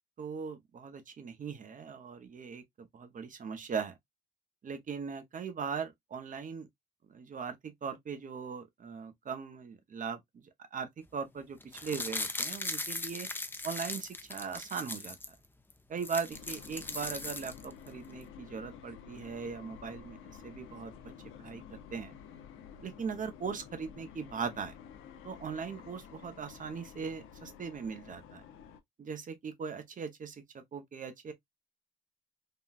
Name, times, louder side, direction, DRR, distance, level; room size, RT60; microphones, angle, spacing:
voice 1, 0.2-4.0 4.6-6.7 7.1-13.3 13.6-15.2 15.9-21.1 21.4-22.1 22.8-24.7 25.2-28.4 29.0-31.3, right 6 dB, 40° right, 0.8 m, -39 dB
sound 1, 11.6-15.3 15.7-15.8 16.0-17.9 18.2-18.3, left 2 dB, 10° left, 0.5 m, -39 dB
sound 2, 16.3-28.8, left 8 dB, 90° left, 0.6 m, -51 dB
3.6 x 2.3 x 2.3 m
cardioid pair, 90°, 20 cm